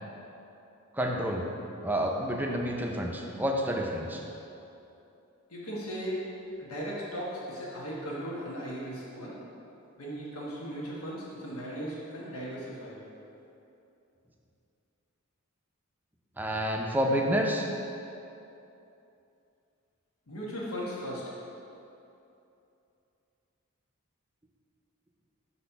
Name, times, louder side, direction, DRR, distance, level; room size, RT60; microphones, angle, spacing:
voice 1, 1.0-1.4 1.8-4.2 16.4-17.7, equal, 10° right, 1 dB, 0.4 m, -29 dB
voice 2, 5.5-6.2 6.6-9.4 10.0-13.0 20.3-21.4, equal, 85° left, -5 dB, 1.2 m, -37 dB
5.9 x 4.2 x 5.7 m, 2.8 s
head